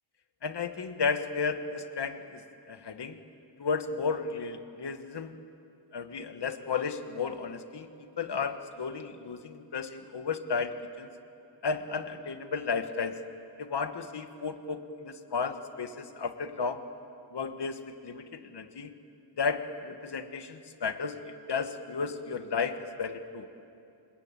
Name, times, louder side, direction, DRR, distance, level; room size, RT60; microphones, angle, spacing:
voice 1, 0.4-3.2 3.6-5.4 5.9-11.1 11.6-13.2 13.6-16.8 17.3-18.9 19.4-23.5, left 5 dB, 60° left, 9 dB, 1.5 m, -33 dB
29.0 x 21.5 x 9.0 m, 2.6 s
wide cardioid pair, 155°, 45 cm